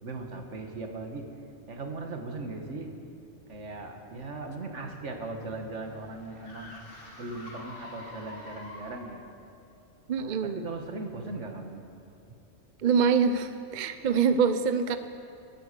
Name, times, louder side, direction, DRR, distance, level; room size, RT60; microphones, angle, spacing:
voice 1, 0.0-1.3 1.7-3.0 3.5-6.7 7.2-9.2 10.2-11.8, right 3 dB, 70° right, 3 dB, 1.8 m, -38 dB
sound 1, 4.7-9.2, left 1 dB, 45° left, 2.6 m, -47 dB
voice 2, 10.1-10.6 12.8-15.0, right 6 dB, 50° right, 10 dB, 0.6 m, -25 dB
23.0 x 8.9 x 6.8 m, 2.5 s
omnidirectional pair, 1.3 m